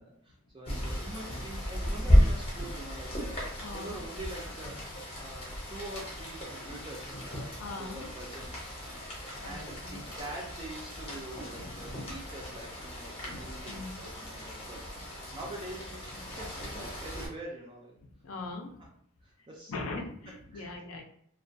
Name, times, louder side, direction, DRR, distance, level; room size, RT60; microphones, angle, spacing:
voice 1, 0.0-3.4 3.7-4.8 5.2-8.5 9.4-17.9 19.2-19.7 20.5-20.7, right 2 dB, 20° right, -3 dB, 0.4 m, -45 dB
Rain, 0.7-17.3, equal, 25° left, 0.7 m, -33 dB
voice 2, 3.6-4.0 7.6-8.1 9.4-9.5 9.8-10.0 11.5-12.1 13.3-14.0 16.3-16.4 18.2-18.8 19.7-21.0, left 3 dB, 65° left, 3 dB, 0.5 m, -41 dB
2.3 x 2.2 x 2.5 m, 0.70 s
head